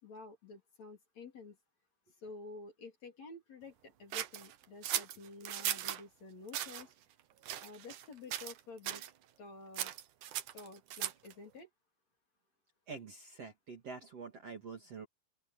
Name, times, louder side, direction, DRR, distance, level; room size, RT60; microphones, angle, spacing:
voice 1, 0.0-1.6 2.2-6.9 7.6-9.0 9.4-9.9 10.5-11.7, left 3 dB, 40° left, 4.5 m, -50 dB
sound 1, 4.1-6.0 6.5-6.8 7.4-8.1 8.3-8.6 8.8-9.1 9.7-11.3, right 12 dB, 75° right, 1.8 m, -38 dB
voice 2, 12.9-15.1, right 5 dB, 40° right, 3.0 m, -46 dB
open air
omnidirectional pair, 5.1 m